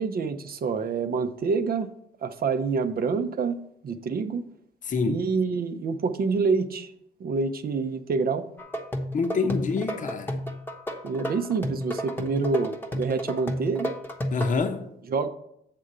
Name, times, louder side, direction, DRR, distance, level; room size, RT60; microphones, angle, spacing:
voice 1, 0.0-1.9 2.2-4.5 5.0-6.9 7.2-8.5 11.0-13.9 15.1-15.3, right 4 dB, 50° right, 0.7 m, -27 dB
voice 2, 4.8-5.3 9.1-10.4 14.3-14.9, left 4 dB, 40° left, 0.8 m, -26 dB
sound 1, 8.6-14.5, equal, 10° left, 0.9 m, -32 dB
7.6 x 3.7 x 6.6 m
cardioid pair, 90°, 20 cm